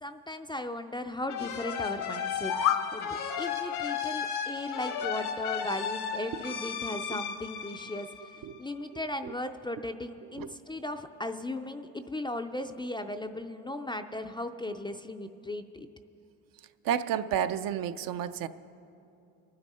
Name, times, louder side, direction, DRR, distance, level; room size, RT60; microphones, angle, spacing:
voice 1, 0.0-8.1 8.6-15.9, left 1 dB, 15° left, 7 dB, 0.4 m, -37 dB
sound 1, 1.3-8.7, left 7 dB, 75° left, 1.3 m, -35 dB
sound 2, 2.2-2.9, left 9 dB, 60° left, 0.9 m, -28 dB
voice 2, 16.8-18.5, right 9 dB, 65° right, 11 dB, 0.6 m, -31 dB
24.5 x 9.7 x 4.2 m, 2.7 s
cardioid pair, 115°, 38 cm